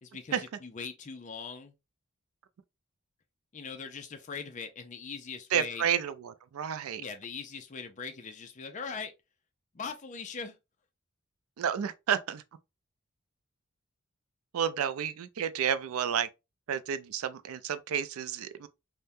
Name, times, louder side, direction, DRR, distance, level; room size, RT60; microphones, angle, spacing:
voice 1, 0.0-1.7 3.5-5.8 7.0-9.1 9.7-10.5, left 5 dB, 35° left, 0.5 m, -41 dB
voice 2, 5.5-7.0 11.6-12.4 14.5-16.3 16.7-18.7, right 8 dB, 80° right, 0.4 m, -31 dB
3.5 x 2.1 x 2.6 m
head